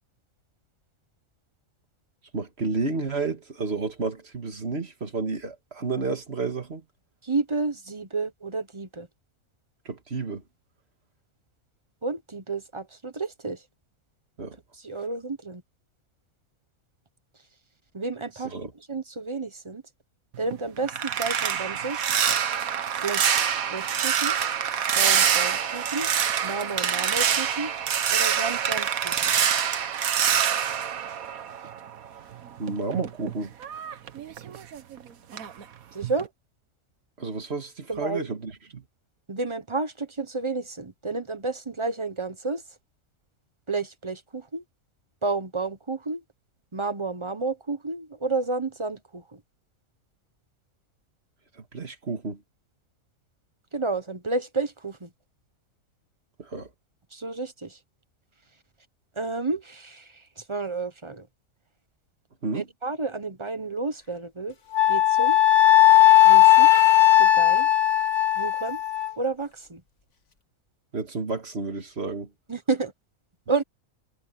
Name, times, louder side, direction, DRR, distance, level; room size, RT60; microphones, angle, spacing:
voice 1, 2.3-6.8 9.9-10.4 14.4-14.6 18.3-18.7 32.6-33.5 37.2-38.8 51.5-52.4 56.4-56.7 62.4-62.7 70.9-72.3, right 3 dB, 45° right, 2.4 m, -31 dB
voice 2, 7.3-9.1 12.0-13.6 14.8-15.6 17.9-18.6 18.9-19.8 20.4-22.0 23.0-23.3 23.7-24.3 24.9-26.1 26.4-27.7 28.1-29.1 35.9-36.3 37.9-38.3 39.3-42.6 43.7-44.6 45.2-46.2 46.7-49.2 53.7-55.1 57.1-57.7 59.2-60.0 60.5-61.2 62.5-64.5 64.9-65.4 66.2-66.7 67.2-67.7 68.4-68.8 69.2-69.8 72.5-72.9 73.5-73.6, right 3 dB, 25° right, 1.0 m, -30 dB
sound 1, 20.3-32.0 32.3-35.0 35.3-35.6 36.0-36.3, right 8 dB, 75° right, 1.5 m, -26 dB
Wind instrument woodwind instrument, 64.7-69.1, left 14 dB, 55° left, 1.9 m, -17 dB
omnidirectional pair, 1.5 m